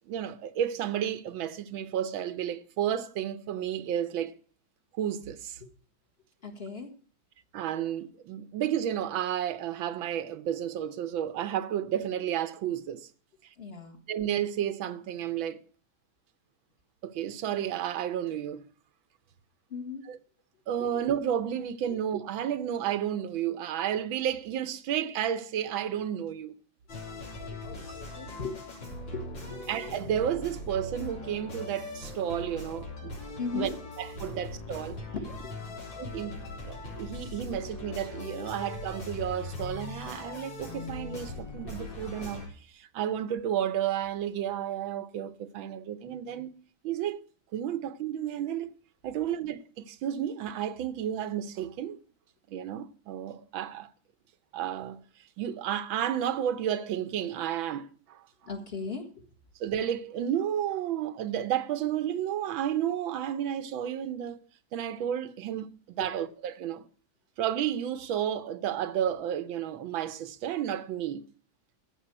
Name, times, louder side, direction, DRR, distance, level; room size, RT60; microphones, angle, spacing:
voice 1, 0.1-4.3 5.0-5.6 7.5-13.1 14.1-15.6 17.0-18.7 20.1-20.2 20.7-26.5 29.7-33.2 33.5-33.7 34.0-35.0 36.0-36.3 36.6-46.5 46.8-47.2 47.5-48.7 49.0-52.0 52.5-53.9 54.5-55.0 55.4-58.2 59.6-64.4 64.7-66.8 67.4-71.2, right 10 dB, 85° right, 1.6 m, -32 dB
voice 2, 6.4-6.9 13.6-14.0 19.7-20.0 27.2-28.6 29.1-29.7 33.4-33.7 34.2-34.3 35.3-35.6 58.5-59.3, left 5 dB, 35° left, 1.8 m, -38 dB
sound 1, 26.9-42.5, left 2 dB, 80° left, 4.3 m, -40 dB
15.0 x 5.5 x 8.7 m
omnidirectional pair, 2.1 m